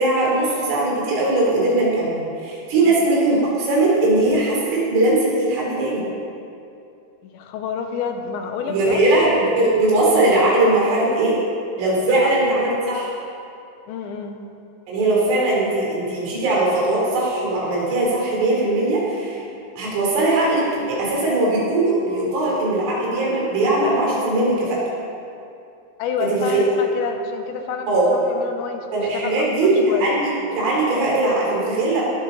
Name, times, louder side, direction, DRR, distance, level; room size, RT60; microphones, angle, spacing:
voice 1, 0.0-6.1 8.7-11.4 11.8-13.1 14.9-19.4 19.8-24.8 26.3-26.7 27.9-28.1 28.9-32.0, right 2 dB, 80° right, -5 dB, 5.9 m, -20 dB
voice 2, 7.2-9.0 12.0-12.5 13.9-14.4 26.0-30.2, left 5 dB, 75° left, 4 dB, 3.0 m, -29 dB
19.0 x 11.5 x 4.0 m, 2.6 s
omnidirectional pair, 5.5 m